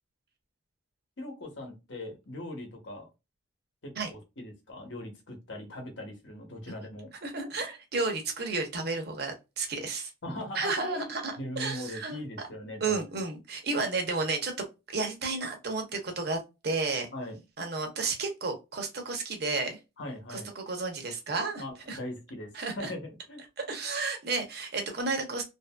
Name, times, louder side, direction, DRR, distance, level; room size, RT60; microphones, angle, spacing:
voice 1, 1.2-3.1 3.8-7.1 10.2-13.0 17.1-17.4 20.0-20.5 21.6-23.4, left 1 dB, 70° left, 0.9 m, -40 dB
voice 2, 7.2-10.1 10.6-12.2 12.8-14.5 14.9-17.1 17.6-19.8 20.3-21.6 21.9-22.0 22.5-22.9 23.7-25.5, right 3 dB, 55° right, 0.7 m, -32 dB
2.8 x 2.6 x 2.2 m
head